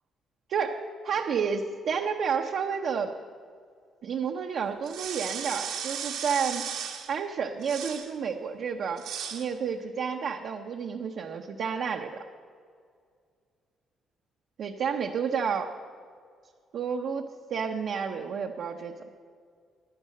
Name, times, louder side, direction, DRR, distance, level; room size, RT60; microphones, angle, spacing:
voice 1, 0.5-3.1 4.0-6.7 7.1-9.0 9.3-12.2 14.6-15.8 16.7-19.1, right 6 dB, 70° right, 2 dB, 0.8 m, -30 dB
sound 1, 4.8-7.1 7.6-8.1 9.0-9.5, right 8 dB, 90° right, 1.5 m, -35 dB
11.5 x 11.0 x 7.6 m, 2.1 s
cardioid pair, 90°, 0 cm